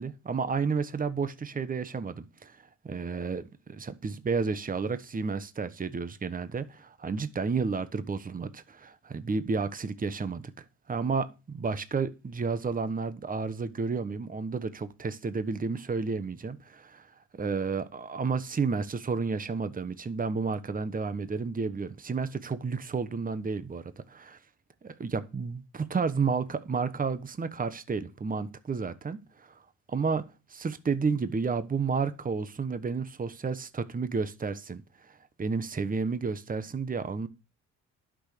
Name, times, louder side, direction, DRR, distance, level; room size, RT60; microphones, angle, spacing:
voice 1, 0.0-2.6 2.8-17.1 17.4-24.4 24.8-29.6 29.9-30.2 30.5-37.3, right 5 dB, 30° right, 1.2 m, -31 dB
11.5 x 6.4 x 6.8 m
cardioid pair, 90°, 30 cm